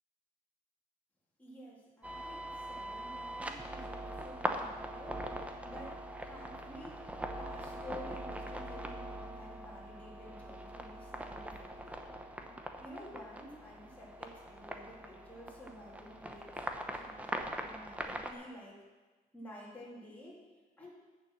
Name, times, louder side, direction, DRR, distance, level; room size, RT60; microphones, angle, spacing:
voice 1, 1.4-5.2 5.6-7.0 7.4-12.0 12.5-16.7 16.9-18.8 19.3-20.4 20.8-20.9, left 1 dB, 10° left, -6 dB, 2.9 m, -51 dB
sound 1, 2.0-18.3, right 1 dB, 10° right, 0.8 m, -42 dB
8.8 x 6.9 x 6.2 m, 1.3 s
cardioid pair, 110°, 17 cm